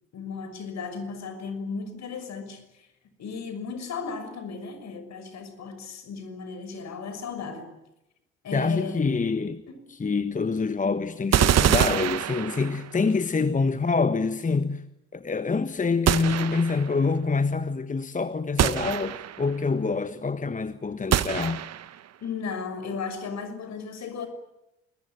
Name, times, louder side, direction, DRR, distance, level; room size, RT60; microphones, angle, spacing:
voice 1, 0.1-2.9 3.2-7.7 8.4-9.1 9.7-9.9 22.2-24.3, left 5 dB, 55° left, 6.2 m, -35 dB
voice 2, 8.5-9.6 9.9-14.8 15.1-21.6, left 4 dB, 25° left, 1.4 m, -26 dB
sound 1, 11.3-13.0 16.1-16.9 18.6-19.5 21.1-22.0, right 10 dB, 50° right, 1.4 m, -24 dB
27.0 x 22.0 x 9.1 m
figure-of-eight pair, 50°, 33 cm